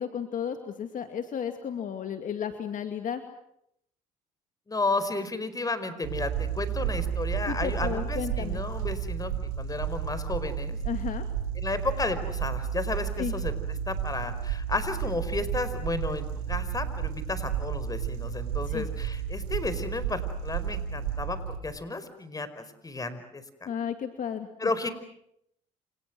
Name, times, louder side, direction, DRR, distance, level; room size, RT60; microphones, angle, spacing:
voice 1, 0.0-3.2 7.5-8.6 10.8-11.2 13.2-13.3 18.7-18.9 23.7-24.5, left 8 dB, 55° left, 7 dB, 2.5 m, -33 dB
voice 2, 4.7-10.8 11.6-23.7 24.6-24.9, left 3 dB, 20° left, 12 dB, 4.9 m, -33 dB
sound 1, 6.0-21.6, right 8 dB, 90° right, 4.5 m, -32 dB
28.5 x 28.5 x 6.3 m, 0.74 s
supercardioid pair, 80°, 16 cm